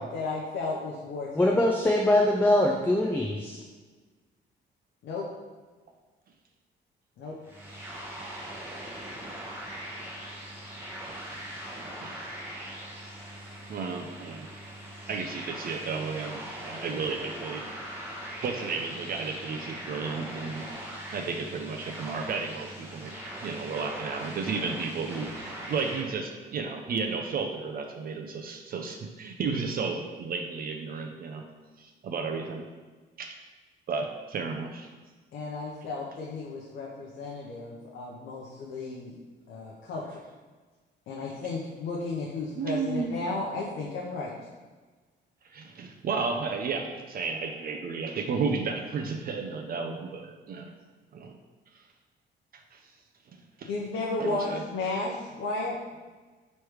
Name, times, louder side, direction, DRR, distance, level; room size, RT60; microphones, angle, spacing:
voice 1, 0.0-1.5 5.0-5.2 7.2-7.3 35.3-39.1 39.5-40.2 41.1-44.3 53.6-55.7, left 3 dB, 70° left, -3 dB, 0.7 m, -34 dB
voice 2, 1.4-3.6, left 1 dB, 10° left, 0 dB, 0.4 m, -23 dB
sound 1, 7.4-26.0, right 1 dB, 10° right, 1.0 m, -41 dB
voice 3, 12.0-12.4 13.7-14.5 15.1-17.7 18.0-18.1 18.4-20.7 21.1-31.5 31.8-32.7 33.2-33.4 33.9-34.9 42.6-43.1 45.5-50.7 51.1-51.4 51.7-51.8 52.5-52.8 53.6-53.7 54.2-54.6, right 4 dB, 50° right, 3 dB, 0.4 m, -33 dB
3.1 x 3.1 x 4.7 m, 1.3 s
cardioid pair, 90°, 20 cm